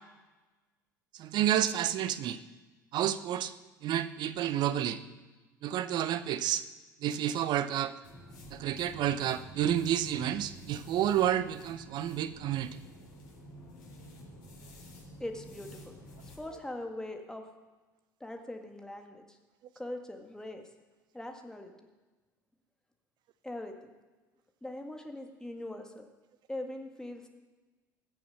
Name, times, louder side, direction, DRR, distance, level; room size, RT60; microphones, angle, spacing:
voice 1, 1.1-2.4 2.9-3.5 3.8-5.0 5.6-6.6 7.0-7.9 8.5-12.8, right 11 dB, 45° right, 13 dB, 0.8 m, -30 dB
sound 1, 8.0-16.4, equal, 65° left, 4.1 m, -50 dB
voice 2, 15.2-15.9 16.2-17.5 18.2-19.4 19.8-20.6 21.1-21.7 23.4-23.9 24.6-26.1 26.5-27.3, left 1 dB, 5° left, 4 dB, 1.8 m, -41 dB
20.0 x 7.0 x 6.5 m, 1.2 s
figure-of-eight pair, 65°, 10 cm